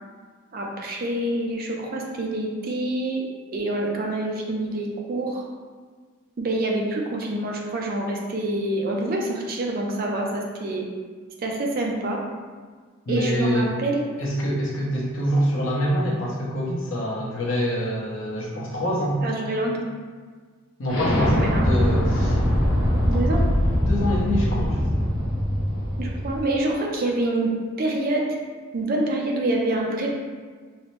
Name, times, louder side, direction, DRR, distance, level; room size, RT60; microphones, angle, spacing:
voice 1, 0.5-3.2 3.5-5.4 6.4-10.8 11.4-12.2 13.1-13.9 19.2-19.9 21.4-21.7 23.1-23.4 26.0-27.5 27.8-28.3 28.7-30.1, right 1 dB, 45° right, 0 dB, 0.4 m, -26 dB
voice 2, 13.1-13.7 14.2-19.2 20.8-22.4 23.8-25.1, equal, 70° left, -4 dB, 0.7 m, -25 dB
Explosion, 20.9-26.4, equal, 85° left, 1.0 m, -22 dB
3.1 x 2.0 x 3.0 m, 1.5 s
head